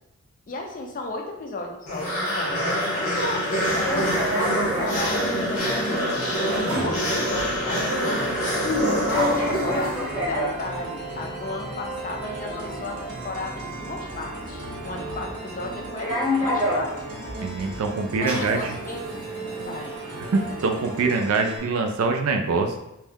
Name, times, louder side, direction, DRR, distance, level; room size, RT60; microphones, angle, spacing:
voice 1, 0.5-3.5 3.7-5.2 5.5-6.2 6.8-8.3 9.1-16.9 18.2-20.0, left 2 dB, 35° left, 2 dB, 0.4 m, -34 dB
sound 1, 1.9-10.3, equal, 85° left, 0.9 m, -25 dB
sound 2, 3.6-21.2, equal, 10° right, 0.8 m, -32 dB
sound 3, 5.6-21.6, right 3 dB, 40° right, 0.7 m, -36 dB
voice 2, 17.4-18.7 20.2-22.8, right 4 dB, 65° right, 4 dB, 0.4 m, -24 dB
2.7 x 2.0 x 3.4 m, 0.88 s
head